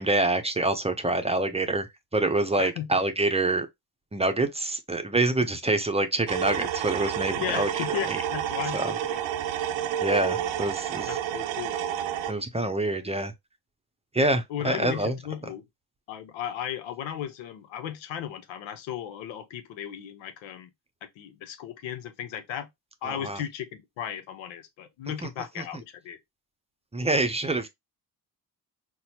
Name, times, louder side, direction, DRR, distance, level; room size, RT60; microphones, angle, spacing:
voice 1, 0.0-3.7 4.1-7.7 8.1-8.2 8.7-8.9 10.0-11.2 12.3-13.3 14.1-15.2 23.1-23.4 25.2-25.3 26.9-27.7, right 2 dB, 15° right, 0.6 m, -26 dB
sound 1, 6.3-12.3, right 10 dB, 80° right, 0.6 m, -30 dB
voice 2, 7.4-9.2 11.1-11.8 14.5-15.6 16.1-20.7 21.0-22.7 23.0-26.2, left 10 dB, 85° left, 0.7 m, -36 dB
4.0 x 2.2 x 2.9 m
supercardioid pair, 55°, 45 cm